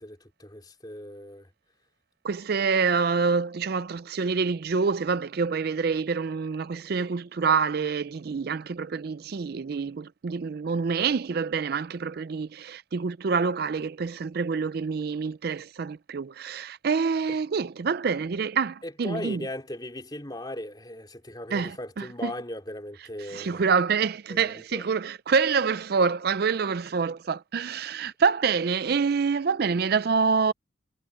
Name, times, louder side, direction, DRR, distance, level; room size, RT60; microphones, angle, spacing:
voice 1, 0.0-1.5 17.3-17.4 18.8-23.6 24.3-24.8, left 1 dB, 20° left, 3.2 m, -38 dB
voice 2, 2.2-19.4 21.5-22.3 23.2-30.5, right 5 dB, 50° right, 0.4 m, -26 dB
head